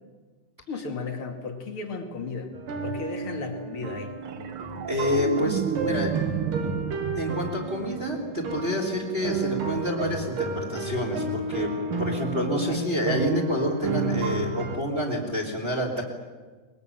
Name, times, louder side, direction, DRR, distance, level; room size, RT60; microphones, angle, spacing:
voice 1, 0.7-2.5 2.8-4.1 12.7-12.9, left 4 dB, 40° left, 4 dB, 3.0 m, -34 dB
sound 1, 2.5-14.8, right 2 dB, 90° right, 4.4 m, -32 dB
sound 2, 4.2-8.7 11.1-11.3, right 9 dB, 70° right, 1.3 m, -32 dB
voice 2, 4.8-6.1 7.2-11.7 12.0-16.0, equal, 20° right, -1 dB, 3.5 m, -28 dB
22.5 x 21.5 x 9.2 m, 1.4 s
omnidirectional pair, 3.8 m